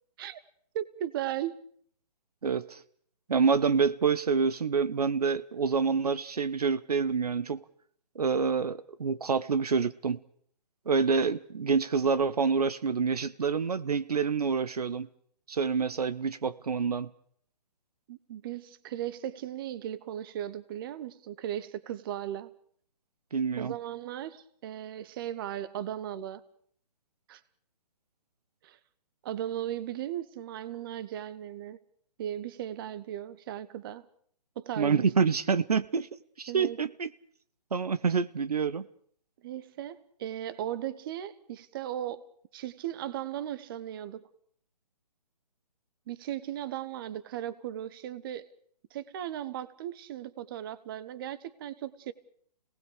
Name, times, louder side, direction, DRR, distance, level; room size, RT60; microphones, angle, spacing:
voice 1, 0.7-1.6 18.1-22.5 23.6-26.4 27.3-27.4 28.6-28.8 29.2-31.8 32.2-34.0 34.6-35.1 36.5-36.8 39.4-42.2 42.5-44.3 46.1-48.4 48.9-52.1, right 11 dB, 35° right, 16 dB, 1.3 m, -37 dB
voice 2, 2.4-2.8 3.3-7.6 8.1-10.2 10.9-15.1 15.5-17.1 23.3-23.7 34.8-36.1 36.4-37.1 37.7-38.9, right 5 dB, 65° right, 15 dB, 1.2 m, -27 dB
29.0 x 19.0 x 6.7 m, 0.63 s
figure-of-eight pair, 135°, 21 cm